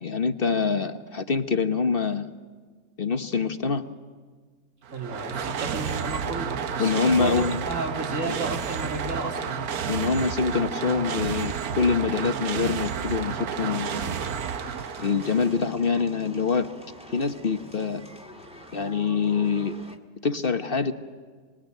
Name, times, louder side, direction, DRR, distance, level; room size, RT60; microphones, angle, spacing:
voice 1, 0.0-2.3 3.0-3.8 6.8-7.6 8.3-8.4 9.9-14.2 15.0-16.7 17.1-18.0 18.7-19.8 20.2-20.9, left 5 dB, 35° left, 8 dB, 1.1 m, -25 dB
sound 1, 4.8-15.7, right 7 dB, 60° right, 1.3 m, -31 dB
voice 2, 4.9-9.5, right 2 dB, 40° right, 2 dB, 3.5 m, -33 dB
sound 2, 14.1-20.0, equal, 5° right, 1.8 m, -46 dB
27.5 x 21.0 x 9.2 m, 1.5 s
omnidirectional pair, 1.9 m